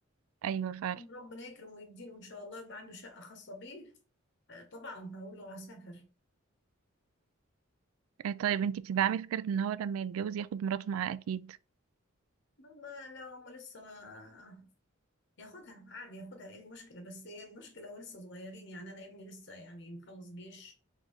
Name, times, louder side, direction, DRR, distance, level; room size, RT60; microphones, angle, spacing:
voice 1, 0.4-1.0 8.2-11.6, right 8 dB, 85° right, 0.3 m, -32 dB
voice 2, 0.9-3.9 4.5-6.1 12.6-14.7 15.4-20.7, left 1 dB, 55° left, 1.1 m, -47 dB
4.0 x 3.7 x 3.4 m
head